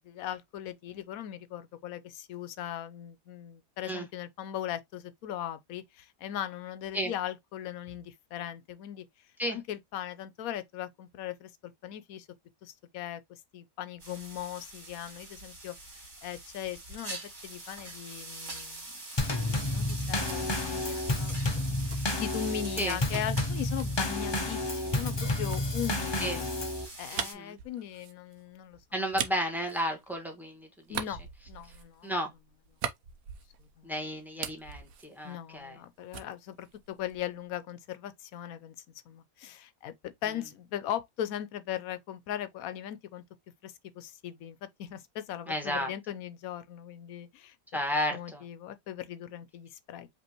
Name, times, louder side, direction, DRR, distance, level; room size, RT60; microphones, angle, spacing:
voice 1, 0.0-9.0 9.5-12.3 12.6-18.9 19.6-26.4 27.0-29.2 30.9-31.2 31.5-32.1 33.6-34.0 35.2-38.8 39.1-43.2 43.6-47.8 48.1-50.1, left 10 dB, 80° left, 1.1 m, -39 dB
sound 1, 14.0-27.3, right 2 dB, 55° right, 2.6 m, -44 dB
Drum kit / Snare drum / Bass drum, 19.2-26.9, left 2 dB, 30° left, 0.5 m, -31 dB
sound 2, 19.9-22.9 23.8-30.4 30.8-33.9 34.2-35.9 36.1-37.4, right 8 dB, 80° right, 1.2 m, -42 dB
voice 2, 22.8-23.2 26.2-26.4 27.1-27.6 28.9-31.2 32.0-32.3 33.8-35.8 45.5-45.9 47.7-48.4, equal, ahead, 1.3 m, -33 dB
5.3 x 3.3 x 2.9 m
omnidirectional pair, 1.5 m